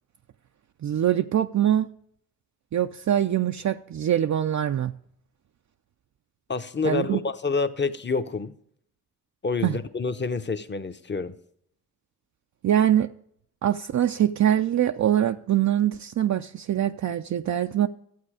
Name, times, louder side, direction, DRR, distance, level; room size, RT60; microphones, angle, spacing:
voice 1, 0.8-1.9 2.7-5.0 6.8-7.2 9.6-9.8 12.6-13.1 13.6-17.9, right 11 dB, 50° right, 0.5 m, -23 dB
voice 2, 6.5-8.5 9.4-11.4, left 4 dB, 30° left, 0.9 m, -28 dB
12.5 x 8.1 x 4.9 m
supercardioid pair, 45°, 38 cm